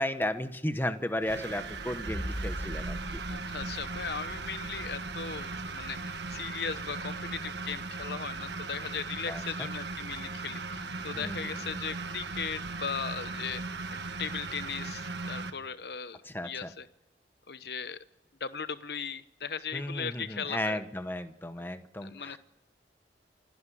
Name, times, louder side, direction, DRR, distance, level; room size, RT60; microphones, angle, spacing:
voice 1, 0.0-3.2 9.3-9.7 11.1-11.8 16.2-16.7 19.7-22.4, left 1 dB, 10° left, 9 dB, 1.0 m, -34 dB
sound 1, 1.2-15.5, right 3 dB, 80° right, 1.4 m, -38 dB
sound 2, 2.1-9.3, equal, 40° right, 8.0 m, -42 dB
voice 2, 3.3-13.6 13.9-16.2 16.4-16.9 17.5-18.0 18.4-20.8 22.0-22.4, left 6 dB, 65° left, 13 dB, 0.9 m, -38 dB
28.5 x 11.5 x 9.9 m, 1.0 s
head